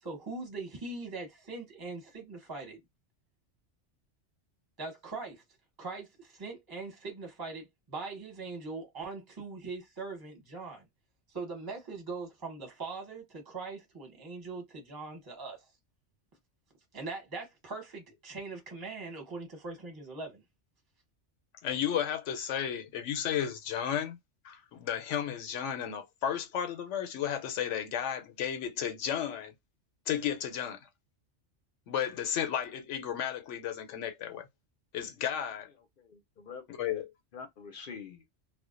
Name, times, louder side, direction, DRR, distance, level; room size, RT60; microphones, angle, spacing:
voice 1, 0.0-2.8 4.8-5.4 5.8-10.9 11.3-15.7 16.9-20.4, right 3 dB, 20° right, 0.9 m, -41 dB
voice 2, 21.6-24.2 24.4-29.5 30.1-30.9 31.9-34.5 34.9-35.7 36.7-37.1, left 9 dB, 85° left, 0.9 m, -33 dB
voice 3, 36.0-37.0 37.3-38.2, left 6 dB, 55° left, 0.7 m, -46 dB
2.4 x 2.1 x 2.4 m
omnidirectional pair, 1.2 m